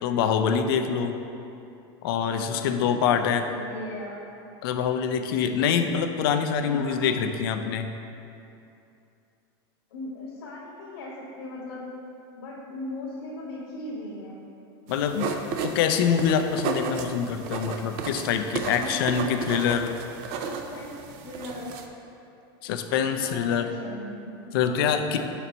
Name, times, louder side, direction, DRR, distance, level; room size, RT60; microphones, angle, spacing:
voice 1, 0.0-1.2 2.0-3.4 4.6-7.9 14.9-15.3 15.6-19.9 22.6-23.7 24.5-25.2, left 7 dB, 70° left, 6 dB, 0.4 m, -25 dB
voice 2, 2.3-4.3 6.7-7.2 9.9-12.0 12.3-14.4 18.7-19.1 20.3-21.8 23.2-25.1, left 2 dB, 90° left, -5 dB, 1.2 m, -39 dB
sound 1, 14.9-21.9, right 5 dB, 45° right, 0.4 m, -34 dB
4.4 x 4.0 x 5.3 m, 2.7 s
supercardioid pair, 155°, 13 cm